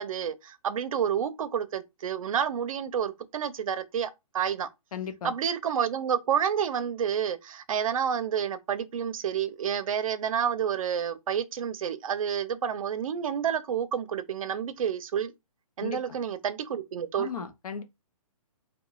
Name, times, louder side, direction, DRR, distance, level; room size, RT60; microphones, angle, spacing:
voice 1, 0.0-4.7 5.2-15.3 15.8-17.5, right 8 dB, 65° right, 0.5 m, -29 dB
voice 2, 4.9-5.3 15.8-16.2 17.2-17.8, left 7 dB, 75° left, 0.6 m, -36 dB
2.9 x 2.1 x 2.3 m
hypercardioid pair, 165°, 19 cm